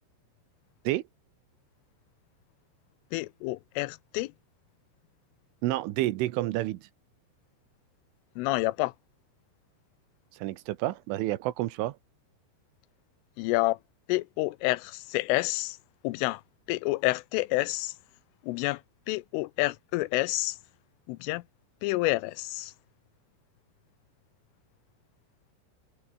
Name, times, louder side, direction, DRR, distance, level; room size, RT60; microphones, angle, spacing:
voice 1, 3.1-4.3 8.4-8.9 13.4-13.8 14.1-15.8 16.0-16.4 16.7-17.9 18.4-18.8 19.1-20.6 21.1-21.4 21.8-22.7, left 20 dB, 85° left, 3.2 m, -28 dB
voice 2, 5.6-6.8 10.4-12.0, right 16 dB, 75° right, 3.4 m, -29 dB
omnidirectional pair, 5.8 m